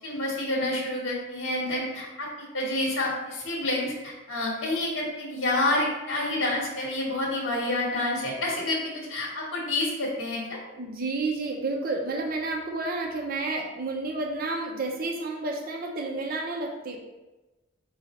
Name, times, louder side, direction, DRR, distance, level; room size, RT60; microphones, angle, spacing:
voice 1, 0.0-10.6, left 1 dB, 80° left, -4 dB, 1.1 m, -28 dB
voice 2, 10.8-17.0, right 3 dB, 50° right, 0 dB, 0.6 m, -30 dB
5.0 x 2.4 x 4.1 m, 1.1 s
head